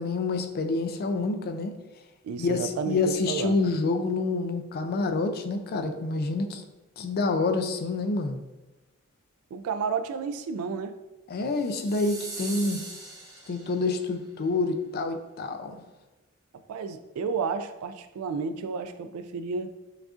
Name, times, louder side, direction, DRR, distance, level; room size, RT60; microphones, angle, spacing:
voice 1, 0.0-1.7 2.4-6.6 7.0-8.4 11.3-12.8 13.5-15.7, left 3 dB, 45° left, 7 dB, 0.4 m, -27 dB
voice 2, 2.2-3.6 9.5-11.0 16.7-19.7, right 5 dB, 80° right, 14 dB, 0.3 m, -31 dB
sound 1, 11.5-14.0, right 3 dB, 15° right, 0.6 m, -41 dB
6.1 x 2.4 x 2.4 m, 1.1 s
head